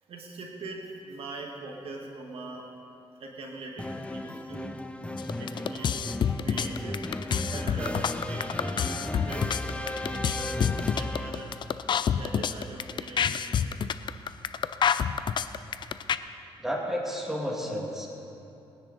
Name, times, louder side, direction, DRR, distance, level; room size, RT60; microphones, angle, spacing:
voice 1, 0.0-2.8 3.2-4.8 5.4-7.2 7.5-11.6 12.1-13.5, right 2 dB, 70° right, 0 dB, 1.9 m, -42 dB
sound 1, 3.8-11.6, left 2 dB, 10° left, 0.7 m, -35 dB
sound 2, 5.2-16.2, left 8 dB, 50° left, 0.5 m, -27 dB
voice 2, 16.6-18.1, equal, 5° right, -2 dB, 2.4 m, -31 dB
21.0 x 10.0 x 4.2 m, 2.9 s
cardioid pair, 100°, 10 cm